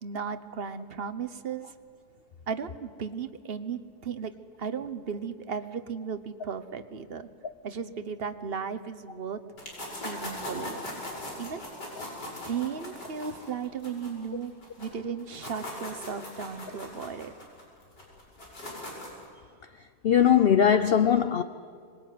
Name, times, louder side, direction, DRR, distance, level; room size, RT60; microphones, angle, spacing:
voice 1, 0.0-1.7 2.5-7.3 7.6-9.4 10.0-10.8 11.4-11.6 12.5-14.5 14.8-17.3, right 6 dB, 40° right, 1.1 m, -35 dB
sound 1, 9.6-14.9 15.2-19.3, left 1 dB, 80° left, 6.4 m, -40 dB
voice 2, 20.0-21.4, left 8 dB, 55° left, 0.7 m, -20 dB
25.5 x 21.0 x 9.4 m
omnidirectional pair, 1.8 m